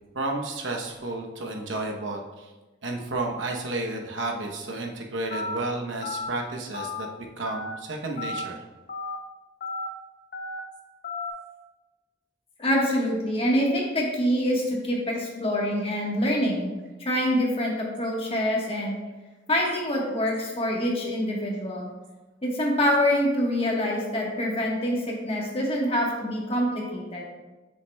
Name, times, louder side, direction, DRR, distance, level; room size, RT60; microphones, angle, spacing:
voice 1, 0.1-2.5 2.8-8.6, right 2 dB, 85° right, 1 dB, 0.9 m, -32 dB
Telephone, 5.3-5.6 6.0-6.3 6.7-7.0 7.5-7.7 8.2-8.4 8.9-9.2 9.6-9.9 10.3-10.6 11.0-11.3, left 3 dB, 50° left, 0.8 m, -33 dB
voice 2, 12.6-16.7 17.0-19.0 19.5-21.9 22.4-27.2, equal, 30° left, -1 dB, 1.3 m, -25 dB
8.0 x 6.5 x 2.3 m, 1.2 s
head